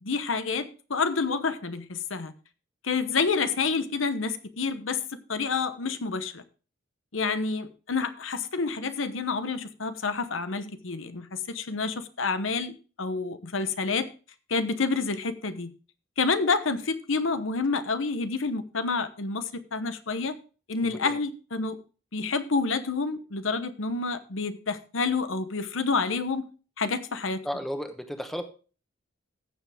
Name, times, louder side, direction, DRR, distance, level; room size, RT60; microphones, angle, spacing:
voice 1, 0.0-2.3 2.8-5.0 5.3-6.4 7.1-14.1 14.5-15.7 16.2-20.4 20.7-21.8 22.1-26.4 26.8-27.4, left 4 dB, 85° left, 11 dB, 1.0 m, -28 dB
voice 2, 20.8-21.2 27.4-28.4, equal, ahead, 6 dB, 1.1 m, -34 dB
15.5 x 6.9 x 3.5 m, 0.36 s
head